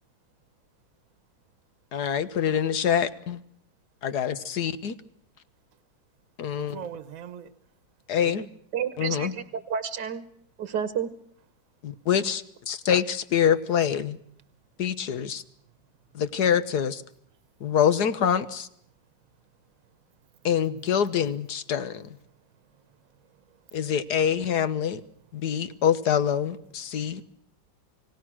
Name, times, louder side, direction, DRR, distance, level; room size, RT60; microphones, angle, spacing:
voice 1, 1.9-3.4 4.0-4.9 6.4-6.8 8.1-8.4 9.0-9.3 11.8-14.2 14.8-15.4 16.1-17.0 17.6-18.7 20.4-22.1 23.7-25.0 25.3-27.2, left 8 dB, 60° left, 1.6 m, -25 dB
voice 2, 6.5-7.5 8.1-8.4 9.1-9.3 20.2-20.5 22.3-23.8 25.4-25.8 26.9-27.2, right 8 dB, 50° right, 1.5 m, -45 dB
voice 3, 8.7-10.2 10.6-11.1, right 7 dB, 65° right, 1.6 m, -30 dB
30.0 x 18.5 x 6.2 m
omnidirectional pair, 2.1 m